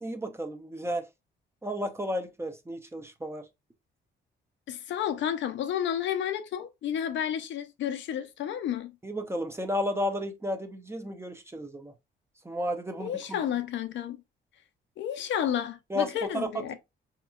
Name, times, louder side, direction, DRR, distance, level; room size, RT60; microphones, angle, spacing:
voice 1, 0.0-1.1 1.6-3.5 9.0-11.9 12.4-13.4 15.9-16.7, equal, 15° right, 0.7 m, -33 dB
voice 2, 4.7-8.9 13.0-14.2 15.0-16.7, left 9 dB, 70° left, 0.6 m, -31 dB
4.4 x 2.9 x 2.4 m
cardioid pair, 90°, 20 cm